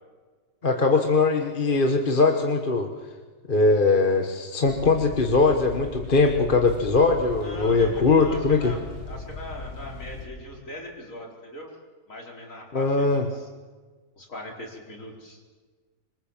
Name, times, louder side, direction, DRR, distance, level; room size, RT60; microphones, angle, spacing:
voice 1, 0.6-2.9 3.5-8.7 12.7-13.2, left 3 dB, 30° left, 4 dB, 1.5 m, -21 dB
sound 1, 4.6-10.3, left 2 dB, 90° left, 3.8 m, -38 dB
voice 2, 7.4-11.7 12.1-13.5 14.2-15.4, left 1 dB, 45° left, 0 dB, 4.9 m, -40 dB
26.0 x 23.5 x 7.3 m, 1.4 s
omnidirectional pair, 1.8 m